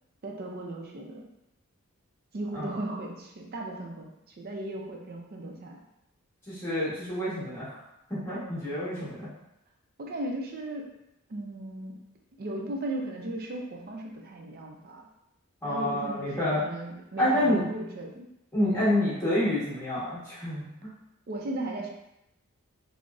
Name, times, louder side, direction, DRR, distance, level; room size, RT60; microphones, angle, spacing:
voice 1, 0.2-1.3 2.3-4.1 4.4-5.8 10.0-10.9 11.3-12.0 12.4-15.1 15.7-18.3 21.3-21.9, right 1 dB, 45° right, 1 dB, 0.5 m, -36 dB
voice 2, 6.5-7.8 8.1-9.3 15.6-16.6 17.2-17.6 18.5-20.9, left 1 dB, 15° left, -11 dB, 1.1 m, -28 dB
3.7 x 2.0 x 2.3 m, 0.84 s
head